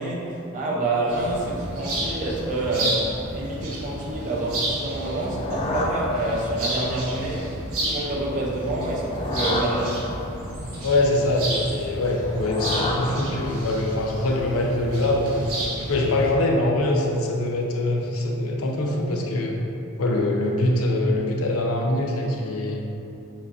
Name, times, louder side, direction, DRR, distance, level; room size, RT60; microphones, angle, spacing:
voice 1, 0.0-10.0, right 2 dB, 35° right, -5 dB, 0.8 m, -27 dB
sound 1, 1.1-16.3, right 1 dB, 85° right, 0.9 m, -31 dB
sound 2, 5.0-6.9 8.8-10.6 12.1-13.9, left 1 dB, 30° left, 0.3 m, -31 dB
voice 2, 10.8-19.6 20.0-22.8, left 1 dB, 80° left, 0 dB, 0.6 m, -23 dB
7.1 x 2.4 x 2.7 m, 2.7 s
head